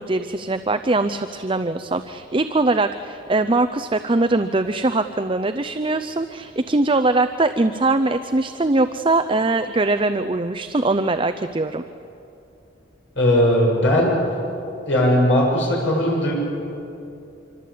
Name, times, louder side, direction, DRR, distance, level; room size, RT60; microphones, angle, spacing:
voice 1, 0.0-11.8, right 2 dB, 25° right, 9 dB, 0.6 m, -21 dB
voice 2, 13.2-14.2 14.8-16.4, left 1 dB, 80° left, -2 dB, 8.0 m, -18 dB
26.0 x 25.0 x 8.6 m, 2.7 s
head